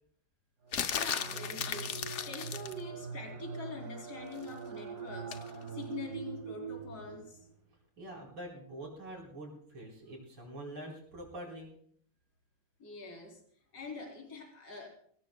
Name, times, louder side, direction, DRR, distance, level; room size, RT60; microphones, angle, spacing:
sound 1, 0.6-7.5, right 5 dB, 50° right, 3.3 m, -43 dB
sound 2, 0.7-2.8 5.3-5.5, left 8 dB, 75° left, 0.6 m, -35 dB
voice 1, 0.9-7.4 12.8-13.4 13.7-14.9, left 3 dB, 50° left, 1 dB, 3.6 m, -45 dB
voice 2, 8.0-11.7, right 1 dB, 75° right, -1 dB, 5.0 m, -45 dB
21.5 x 17.5 x 2.2 m, 0.62 s
omnidirectional pair, 2.2 m